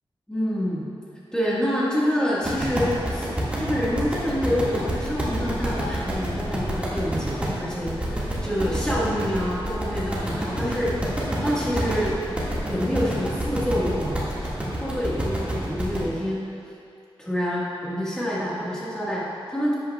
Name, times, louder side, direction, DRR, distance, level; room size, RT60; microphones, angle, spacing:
voice 1, 0.3-0.9 1.3-3.3 3.6-11.0 11.4-12.2 12.6-16.4 17.2-19.7, equal, 10° left, -8 dB, 1.6 m, -27 dB
sound 1, 2.4-16.0, right 1 dB, 15° right, 1.8 m, -28 dB
sound 2, 3.5-7.7, left 2 dB, 85° right, 0.9 m, -45 dB
12.5 x 8.5 x 2.3 m, 2.4 s
wide cardioid pair, 125°, 9 cm